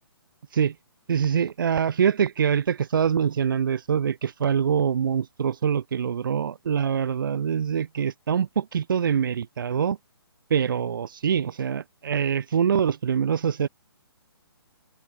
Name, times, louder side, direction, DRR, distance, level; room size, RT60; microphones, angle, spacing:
voice 1, 1.1-10.0 10.5-13.7, right 8 dB, 55° right, 6.6 m, -24 dB
open air
figure-of-eight pair, 140°, 13 cm